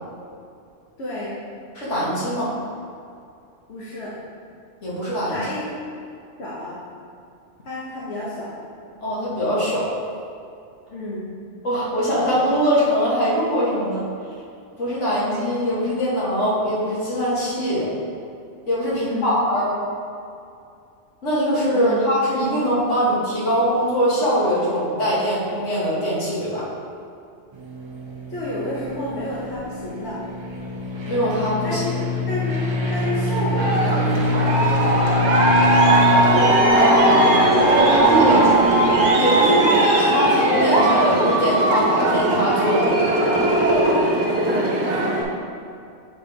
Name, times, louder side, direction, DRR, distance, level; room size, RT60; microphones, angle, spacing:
voice 1, 1.0-1.4 3.7-4.1 5.3-5.7 6.4-6.8 7.6-8.5 10.9-11.3 19.0-19.4 21.7-22.0 28.3-30.2 31.6-31.9 32.3-32.6 32.9-35.4 39.4-39.9 44.4-45.2, left 1 dB, 60° left, -8 dB, 1.4 m, -31 dB
voice 2, 1.8-2.5 4.8-5.5 9.0-10.0 11.6-14.1 14.8-17.9 18.7-19.7 21.2-26.6 31.0-31.8 36.3-37.2 37.6-38.5 39.2-43.4, equal, 80° left, -8 dB, 2.3 m, -22 dB
sound 1, 27.5-39.1, left 1 dB, 30° right, 0.5 m, -24 dB
Aircraft, 33.6-45.2, right 2 dB, 65° right, 1.4 m, -18 dB
7.9 x 3.5 x 5.2 m, 2.5 s
omnidirectional pair, 1.2 m